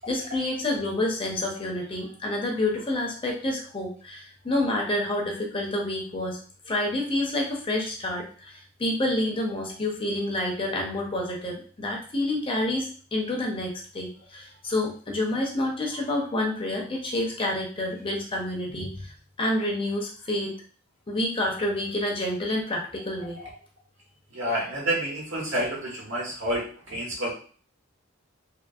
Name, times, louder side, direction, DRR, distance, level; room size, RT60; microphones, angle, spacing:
voice 1, 0.1-6.4 6.7-20.5 21.1-23.4, left 1 dB, 25° left, 0 dB, 0.6 m, -28 dB
voice 2, 24.3-27.3, right 1 dB, 65° right, -3 dB, 1.2 m, -29 dB
2.6 x 2.6 x 2.3 m, 0.41 s
head